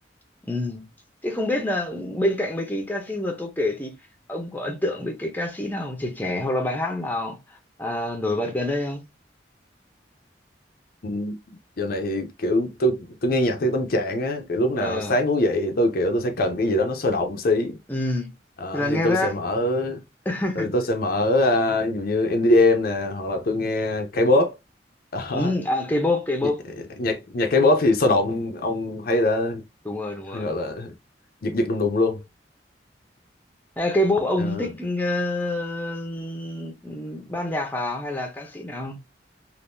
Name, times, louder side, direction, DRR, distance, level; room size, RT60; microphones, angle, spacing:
voice 1, 0.5-0.9 1.2-4.0 4.3-7.4 7.8-9.0 14.8-15.1 17.9-18.3 18.7-19.3 20.3-20.7 25.3-26.7 29.8-30.5 33.8-39.0, left 1 dB, 10° left, 0.7 m, -26 dB
voice 2, 11.0-11.4 11.8-17.8 18.6-20.0 20.6-24.5 25.1-25.5 27.0-29.6 30.3-30.9 31.4-32.2 34.4-34.7, left 1 dB, 55° left, 0.6 m, -23 dB
3.5 x 2.6 x 2.6 m
head